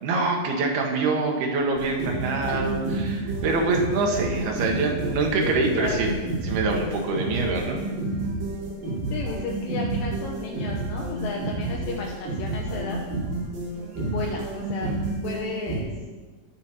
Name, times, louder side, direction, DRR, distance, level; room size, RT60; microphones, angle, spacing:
voice 1, 0.0-6.2 6.4-7.8, right 3 dB, 80° right, 1 dB, 3.6 m, -25 dB
sound 1, 1.8-15.8, right 2 dB, 65° right, 6.2 m, -30 dB
voice 2, 2.1-2.6 5.4-6.1 9.1-13.0 14.0-15.0 15.2-15.9, left 4 dB, 70° left, 0 dB, 2.5 m, -33 dB
19.5 x 7.2 x 4.3 m, 1.3 s
omnidirectional pair, 4.4 m